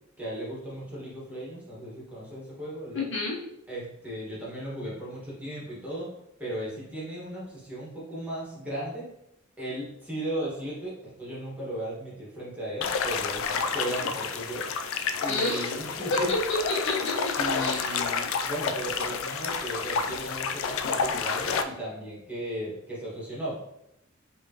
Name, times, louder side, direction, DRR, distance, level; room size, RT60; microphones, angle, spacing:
voice 1, 0.2-3.1 3.7-6.1 6.4-9.1 9.6-14.7 15.2-16.3 17.4-23.6, right 1 dB, 5° right, -7 dB, 1.4 m, -36 dB
voice 2, 2.9-3.4 15.3-15.6 16.1-17.8, left 2 dB, 65° left, -3 dB, 1.1 m, -29 dB
sound 1, 12.8-21.6, left 5 dB, 85° left, 0.3 m, -29 dB
5.1 x 2.9 x 2.8 m, 0.81 s
head